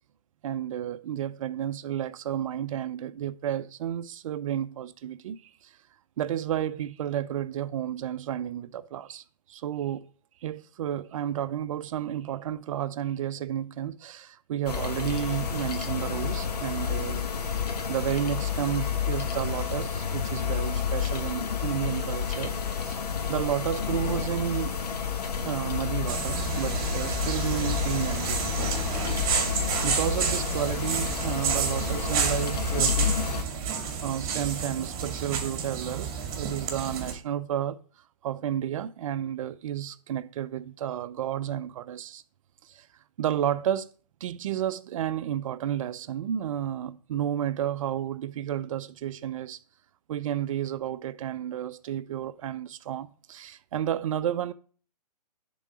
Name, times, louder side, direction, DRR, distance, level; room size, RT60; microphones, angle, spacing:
voice 1, 0.4-5.4 6.2-9.2 9.5-10.1 10.4-17.2 17.9-22.6 22.9-23.0 23.3-24.8 25.4-28.7 29.8-33.2 34.0-37.8 38.2-42.2 42.7-42.9 43.2-43.9 44.2-49.6 50.1-54.5, right 10 dB, 55° right, 0.5 m, -31 dB
sound 1, 14.7-33.4, left 7 dB, 75° left, 1.2 m, -30 dB
sound 2, 26.1-37.1, right 6 dB, 35° right, 1.8 m, -30 dB
10.5 x 3.8 x 4.8 m
hypercardioid pair, 140°, 21 cm